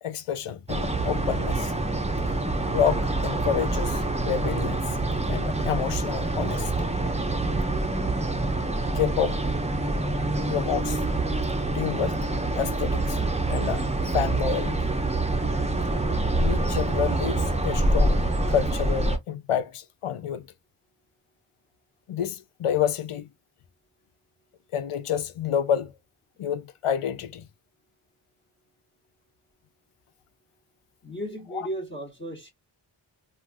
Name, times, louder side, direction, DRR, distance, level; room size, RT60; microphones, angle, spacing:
voice 1, 0.0-1.7 2.7-5.0 5.3-6.9 8.9-9.4 10.5-11.0 11.7-12.2 12.6-13.2 13.5-15.0 16.4-18.2 18.5-20.5 22.1-23.3 24.7-25.9 26.4-27.5 31.5-31.7, left 8 dB, 85° left, 0.6 m, -29 dB
sound 1, 0.7-19.2, right 2 dB, 15° right, 0.5 m, -26 dB
voice 2, 31.0-32.5, right 1 dB, 20° left, 1.0 m, -35 dB
3.3 x 2.4 x 2.4 m
wide cardioid pair, 50°, 50 cm